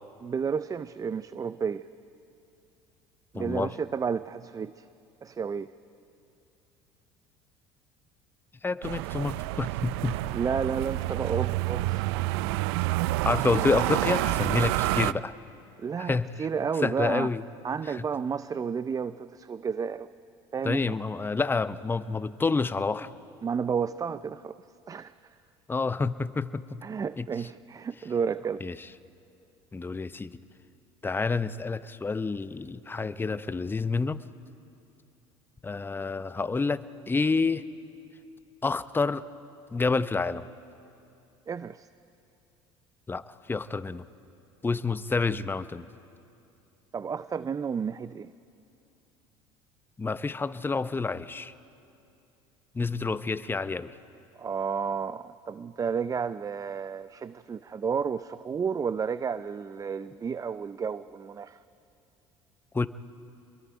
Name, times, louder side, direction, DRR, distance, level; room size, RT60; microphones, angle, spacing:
voice 1, 0.2-1.8 3.3-4.9 5.2-5.7 10.3-12.1 13.6-13.7 15.8-17.3 17.6-20.1 20.5-20.8 23.4-24.6 24.9-25.1 26.8-28.6 41.5-41.9 46.9-48.3 54.4-61.6, right 6 dB, 25° right, 15 dB, 0.5 m, -31 dB
voice 2, 3.3-3.7 8.6-10.2 13.2-15.3 16.0-16.5 16.8-17.4 17.9-18.0 20.6-23.1 25.7-26.8 27.2-27.3 28.6-28.8 29.7-30.3 31.0-34.2 35.6-37.6 38.6-39.2 39.7-40.5 43.1-43.2 43.5-44.0 44.6-45.9 50.0-51.5 52.7-53.9 62.7-62.9, left 4 dB, 15° left, 14 dB, 0.7 m, -28 dB
sound 1, 8.8-15.1, right 18 dB, 80° right, 0.4 m, -28 dB
27.5 x 22.0 x 5.1 m, 2.7 s
hypercardioid pair, 75°, 13 cm